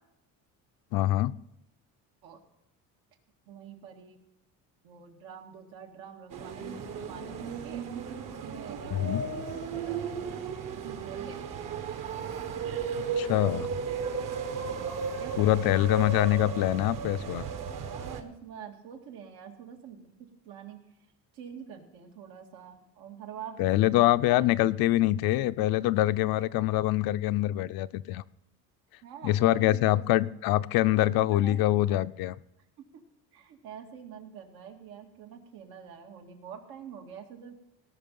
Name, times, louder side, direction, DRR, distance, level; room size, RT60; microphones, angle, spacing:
voice 1, 0.9-1.3 8.9-9.2 13.2-13.7 15.4-17.4 23.6-28.2 29.2-32.3, left 15 dB, 70° left, 0.6 m, -24 dB
voice 2, 3.5-4.2 4.8-7.9 8.2-10.5 10.7-11.8 15.2-15.8 17.9-20.8 21.3-24.4 29.0-30.0 31.2-32.0 32.8-33.0 33.3-37.5, right 8 dB, 85° right, 2.1 m, -46 dB
sound 1, 6.3-18.2, right 5 dB, 60° right, 1.5 m, -35 dB
18.0 x 6.3 x 5.5 m
cardioid pair, 130°, 37 cm